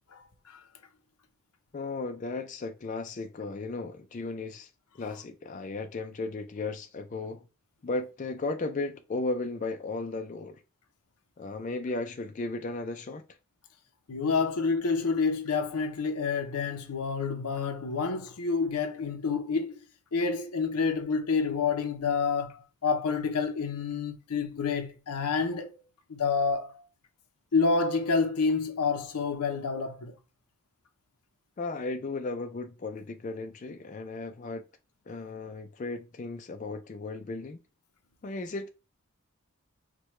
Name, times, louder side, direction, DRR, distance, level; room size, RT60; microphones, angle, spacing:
voice 1, 0.1-0.6 14.1-19.9 20.1-25.8 26.1-26.8 27.5-30.2, left 5 dB, 90° left, 0.6 m, -28 dB
voice 2, 1.7-4.7 5.0-7.4 7.8-10.6 11.4-13.2 31.6-34.6 35.1-37.6 38.2-38.7, left 3 dB, 35° left, 0.3 m, -35 dB
4.6 x 2.2 x 3.1 m
head